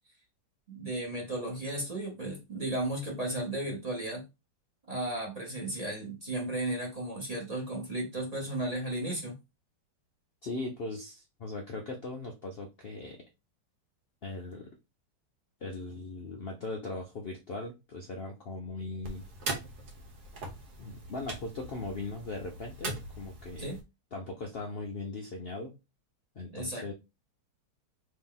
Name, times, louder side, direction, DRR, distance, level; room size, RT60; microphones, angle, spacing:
voice 1, 0.7-4.2 4.9-9.4 23.6-23.8 26.5-26.9, right 1 dB, 25° right, -1 dB, 1.0 m, -34 dB
voice 2, 10.4-13.2 14.2-14.7 15.6-19.2 20.8-23.7 24.1-25.8 26.4-26.9, left 2 dB, 80° left, 1 dB, 0.5 m, -39 dB
sound 1, 19.0-23.8, right 2 dB, 65° right, 1.5 m, -41 dB
3.2 x 2.8 x 3.8 m, 0.25 s
omnidirectional pair, 1.9 m